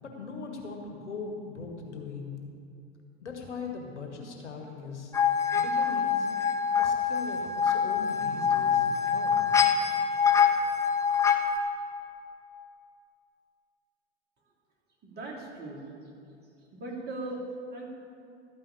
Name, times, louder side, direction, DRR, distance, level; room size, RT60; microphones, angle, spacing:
voice 1, 0.0-2.4 3.2-5.1 5.5-6.3 6.8-9.5, left 4 dB, 75° left, 2 dB, 1.9 m, -40 dB
sound 1, 5.1-11.6, left 7 dB, 10° left, 0.7 m, -25 dB
voice 2, 15.0-15.9 16.7-17.4 17.7-17.8, right 2 dB, 25° right, -3 dB, 2.9 m, -38 dB
13.0 x 5.6 x 8.4 m, 2.6 s
figure-of-eight pair, 95°, 35 cm